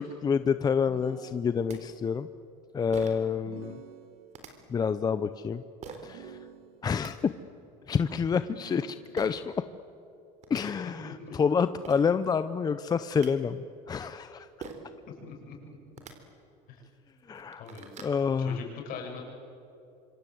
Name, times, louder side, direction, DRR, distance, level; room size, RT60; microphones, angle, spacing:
voice 1, 0.0-2.3 2.7-3.8 4.7-5.6 6.0-6.4 6.8-7.3 7.9-9.5 10.5-14.5 17.3-17.6 18.0-18.6, left 6 dB, 20° left, 12 dB, 0.6 m, -28 dB
sound 1, 0.9-2.0 3.5-4.6 6.1-7.1 8.5-9.5, right 9 dB, 75° right, 2.4 m, -50 dB
sound 2, 1.4-1.5 1.7-1.8 2.9-3.3 4.3-4.5 5.8-6.1 6.7-7.1 9.2-9.3 10.1-10.2 10.4-10.6 11.5-11.6 11.8-12.1 12.9-13.3 14.6-14.9 15.9-16.1 16.8-16.9 17.3-18.2, right 6 dB, 40° right, 3.9 m, -43 dB
voice 2, 11.0-11.3 15.1-15.6 16.7-16.8 17.6-17.9 18.4-19.2, left 5 dB, 55° left, 1 dB, 7.3 m, -41 dB
26.0 x 26.0 x 8.0 m, 2.8 s
cardioid pair, 135°, 18 cm